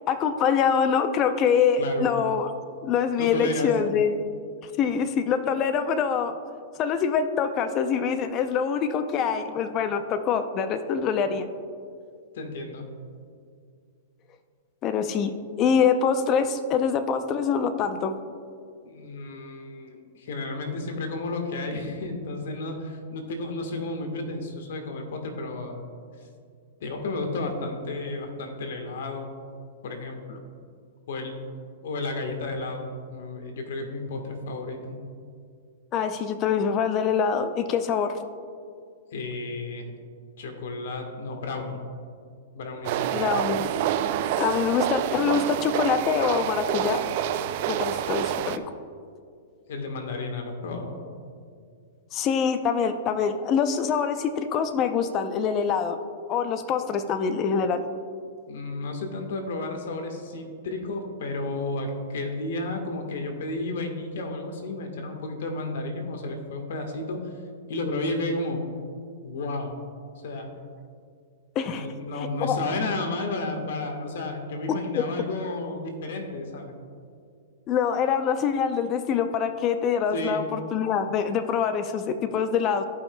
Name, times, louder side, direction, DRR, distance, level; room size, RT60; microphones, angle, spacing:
voice 1, 0.1-2.5 2.8-4.2 4.6-6.4 6.8-11.5 14.8-18.2 35.9-38.2 43.1-43.7 44.4-47.0 47.7-48.6 52.1-56.0 56.3-57.8 71.6-71.9 72.2-72.6 74.9-75.0 77.7-82.8, left 6 dB, 35° left, 9 dB, 0.5 m, -25 dB
voice 2, 1.8-2.1 3.2-3.7 12.3-12.8 18.8-25.8 26.8-29.3 29.8-30.4 31.1-31.3 31.8-35.0 39.1-39.9 40.4-41.8 42.5-43.3 49.7-50.9 58.5-67.2 67.7-68.6 69.2-69.8 70.2-70.6 71.7-76.7 80.1-80.4, left 2 dB, 70° left, 4 dB, 1.4 m, -32 dB
sound 1, 42.8-48.6, right 11 dB, 50° right, 0.4 m, -27 dB
15.0 x 5.6 x 2.3 m, 2.2 s
hypercardioid pair, 135°, 0 cm